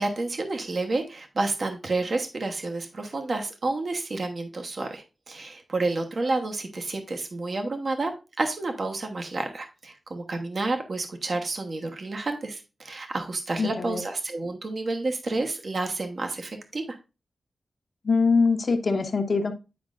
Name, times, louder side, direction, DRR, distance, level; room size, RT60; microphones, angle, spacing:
voice 1, 0.0-17.0, right 2 dB, 55° right, 4 dB, 1.0 m, -30 dB
voice 2, 13.6-14.0 18.0-19.5, left 4 dB, 55° left, 6 dB, 1.0 m, -23 dB
9.5 x 5.2 x 2.5 m, 0.28 s
wide cardioid pair, 130°, 0 cm